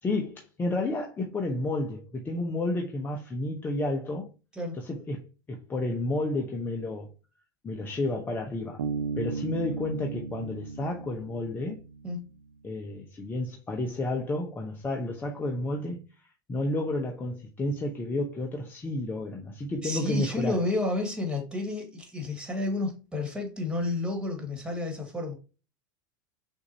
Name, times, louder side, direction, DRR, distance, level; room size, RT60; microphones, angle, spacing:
voice 1, 0.0-4.3 4.8-7.1 7.6-8.8 9.2-11.8 12.6-16.0 16.5-20.6, left 2 dB, 20° left, 0.8 m, -31 dB
Bass guitar, 8.8-12.3, right 5 dB, 85° right, 0.6 m, -35 dB
voice 2, 19.8-25.4, left 2 dB, 5° right, 1.8 m, -31 dB
6.2 x 2.6 x 2.8 m
hypercardioid pair, 100°, 11 cm